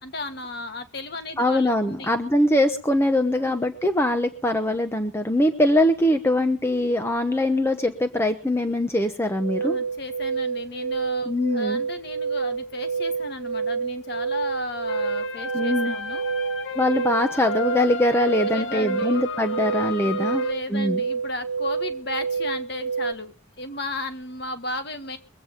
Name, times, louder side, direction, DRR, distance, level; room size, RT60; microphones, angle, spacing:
voice 1, 0.0-2.1 3.3-3.5 9.6-16.3 18.5-19.2 20.0-25.2, left 2 dB, 55° left, 8 dB, 1.6 m, -35 dB
voice 2, 1.4-9.8 11.3-11.8 15.5-16.0 16.8-21.0, left 1 dB, 10° left, 6 dB, 0.9 m, -22 dB
sound 1, 9.4-23.1, right 5 dB, 90° right, 0.7 m, -28 dB
sound 2, 14.9-20.5, left 5 dB, 75° left, 1.2 m, -33 dB
22.5 x 8.8 x 5.2 m, 0.37 s
head